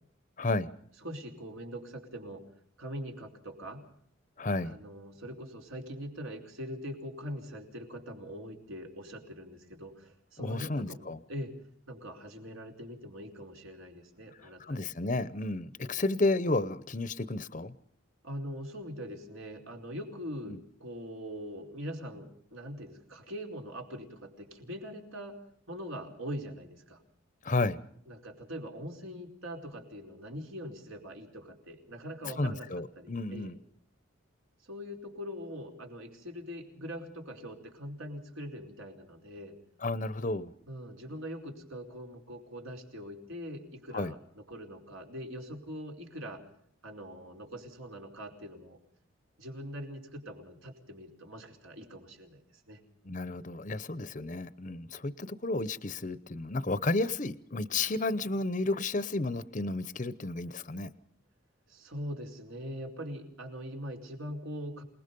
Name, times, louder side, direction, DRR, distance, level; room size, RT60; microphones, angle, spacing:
voice 1, 0.4-0.7 4.4-4.8 10.4-11.2 14.4-17.7 20.5-20.6 27.4-27.8 32.2-33.6 39.8-40.5 43.9-44.1 53.0-60.9, left 2 dB, 35° left, 15 dB, 0.8 m, -32 dB
voice 2, 1.0-2.4 2.8-3.8 4.6-11.5 11.9-14.9 18.2-25.4 25.7-27.0 28.1-32.7 33.0-33.5 34.6-39.6 40.7-46.4 46.8-48.8 49.4-52.8 61.7-64.8, equal, 75° right, 2 dB, 4.7 m, -42 dB
28.0 x 20.0 x 5.4 m, 0.65 s
head